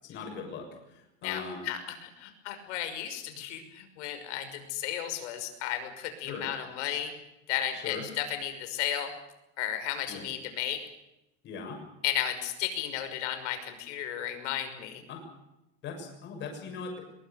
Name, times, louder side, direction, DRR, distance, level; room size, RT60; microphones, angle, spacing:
voice 1, 0.0-1.6 6.2-6.4 7.7-8.0 10.1-10.2 11.4-11.8 15.1-15.2 15.8-16.9, left 5 dB, 30° left, 3 dB, 6.8 m, -40 dB
voice 2, 1.2-7.1 7.5-9.1 9.6-10.8 12.0-15.0, left 10 dB, 80° left, 8 dB, 6.0 m, -34 dB
23.0 x 22.5 x 6.7 m, 0.91 s
cardioid pair, 180°, 34 cm